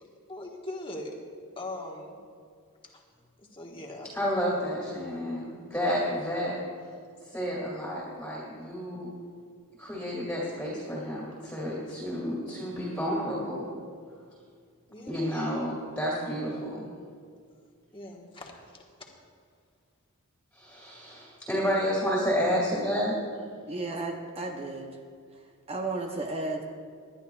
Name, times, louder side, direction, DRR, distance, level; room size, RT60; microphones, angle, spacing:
voice 1, 0.3-1.1 1.6-2.2 2.9-3.0 3.4-4.1 14.9-15.1 17.9-18.8, left 1 dB, 25° left, -1 dB, 1.4 m, -40 dB
voice 2, 4.1-6.6 7.2-9.1 9.8-13.7 15.1-16.8 20.5-23.2, equal, 5° left, -6 dB, 2.4 m, -30 dB
voice 3, 23.7-25.0 25.7-26.6, right 2 dB, 25° right, 2 dB, 0.7 m, -33 dB
20.0 x 11.5 x 2.4 m, 2.2 s
head